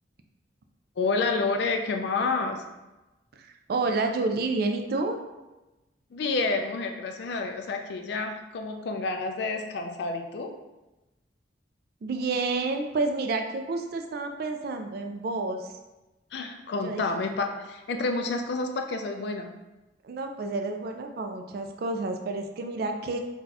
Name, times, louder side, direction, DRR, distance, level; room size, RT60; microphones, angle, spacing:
voice 1, 1.0-2.6 6.1-10.6 16.3-19.5, left 3 dB, 60° left, 5 dB, 0.3 m, -29 dB
voice 2, 3.3-5.2 12.0-15.7 16.8-17.0 20.0-23.2, right 3 dB, 50° right, 5 dB, 0.3 m, -29 dB
2.7 x 2.3 x 3.9 m, 1.0 s
head